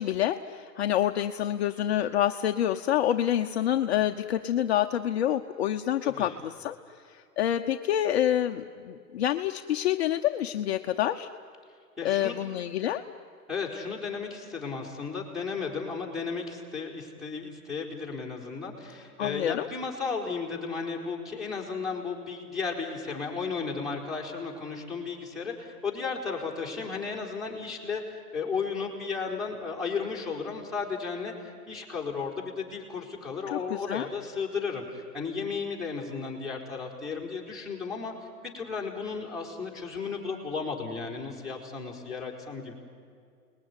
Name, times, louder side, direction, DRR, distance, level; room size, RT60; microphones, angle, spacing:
voice 1, 0.0-6.7 7.1-11.3 12.0-13.0 19.2-19.7 33.5-34.1, left 11 dB, 45° left, 6 dB, 0.8 m, -27 dB
voice 2, 6.0-6.4 12.0-12.4 13.5-28.0 28.3-38.1 38.4-42.7, left 5 dB, ahead, -3 dB, 4.2 m, -34 dB
29.5 x 20.5 x 9.8 m, 2.3 s
hypercardioid pair, 150°, 46 cm